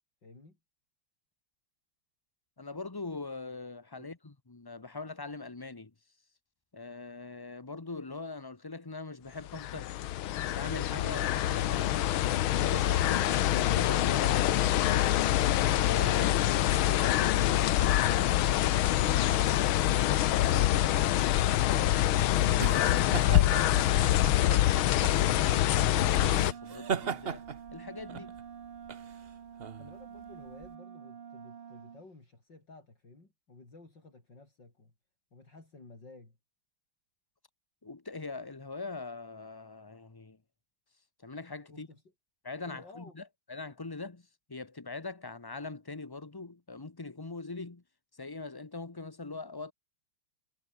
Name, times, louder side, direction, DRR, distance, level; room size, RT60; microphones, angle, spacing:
voice 1, 0.2-0.6 3.9-4.1 29.7-34.9 35.3-36.4 41.7-42.0 42.6-43.2, left 3 dB, 55° left, 6.5 m, -54 dB
voice 2, 2.6-5.9 6.7-15.2 15.7-16.4 16.9-19.8 20.3-22.0 22.5-27.4 27.7-28.3 37.8-40.4 41.2-41.9 42.4-43.2 43.5-44.2 44.5-47.8 48.2-49.7, left 3 dB, 15° left, 0.7 m, -42 dB
sound 1, 9.4-26.5, left 13 dB, 75° left, 1.6 m, -25 dB
sound 2, 21.5-30.7, right 6 dB, 40° right, 0.8 m, -39 dB
Wind instrument woodwind instrument, 26.0-32.1, right 8 dB, 85° right, 2.8 m, -47 dB
omnidirectional pair, 2.3 m